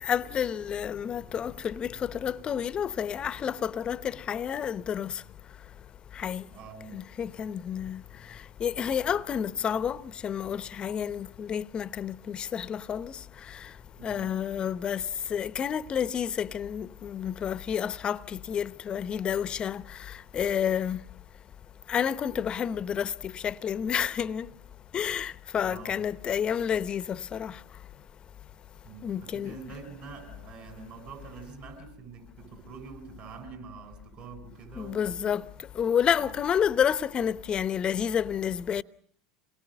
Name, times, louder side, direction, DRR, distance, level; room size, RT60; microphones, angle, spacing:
voice 1, 0.0-5.1 6.2-6.4 6.9-8.0 8.6-13.2 14.0-15.0 15.3-19.8 20.3-21.0 21.9-24.5 24.9-27.6 29.0-29.7 34.8-35.4 35.8-38.8, left 8 dB, 35° left, 0.9 m, -30 dB
voice 2, 6.5-7.0 14.0-14.3 25.6-26.1 28.8-35.3 36.2-36.3, right 5 dB, 55° right, 7.4 m, -45 dB
27.0 x 22.5 x 6.4 m
hypercardioid pair, 90°, 3 cm